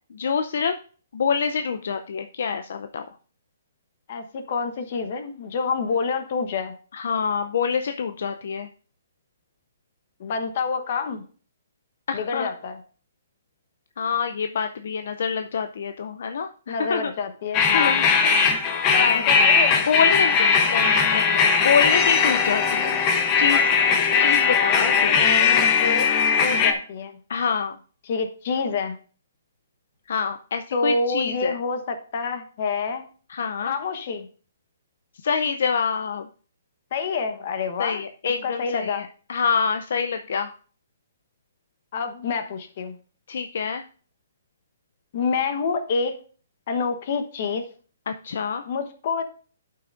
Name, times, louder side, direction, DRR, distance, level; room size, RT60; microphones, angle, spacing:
voice 1, 0.1-0.8 1.1-3.1 6.9-8.7 12.1-12.5 14.0-17.1 17.7-18.5 19.0-19.5 19.9-23.0 23.4-23.7 24.2-25.2 27.3-27.8 30.1-31.5 33.3-33.7 35.2-36.3 37.8-40.5 43.3-43.8 48.1-48.6, left 6 dB, 60° left, 8 dB, 0.5 m, -26 dB
voice 2, 4.1-6.7 10.2-11.2 12.1-12.8 16.7-18.0 18.9-19.8 25.0-26.1 26.4-27.2 28.1-29.0 30.7-33.1 33.6-34.3 36.9-38.0 38.4-39.1 41.9-42.9 45.1-46.2 46.7-47.7 48.6-49.2, left 4 dB, 40° left, 7 dB, 1.1 m, -27 dB
sound 1, 17.5-26.7, left 5 dB, 20° left, 0.8 m, -19 dB
12.5 x 5.8 x 2.5 m, 0.41 s
hypercardioid pair, 170°, 0 cm